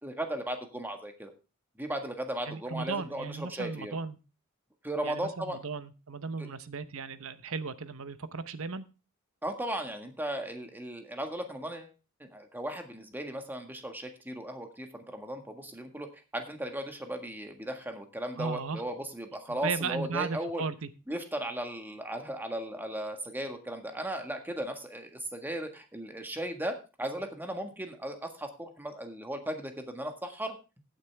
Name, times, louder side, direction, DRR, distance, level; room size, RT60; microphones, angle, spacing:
voice 1, 0.0-1.3 1.8-4.0 4.8-5.6 6.4-6.5 9.4-11.9 12.2-16.1 16.3-20.6 21.1-30.6, right 1 dB, 10° right, 5 dB, 1.7 m, -36 dB
voice 2, 2.5-4.2 5.0-8.8 18.4-18.8 19.5-20.9, right 4 dB, 65° right, 13 dB, 0.9 m, -36 dB
16.0 x 9.2 x 3.5 m, 0.31 s
head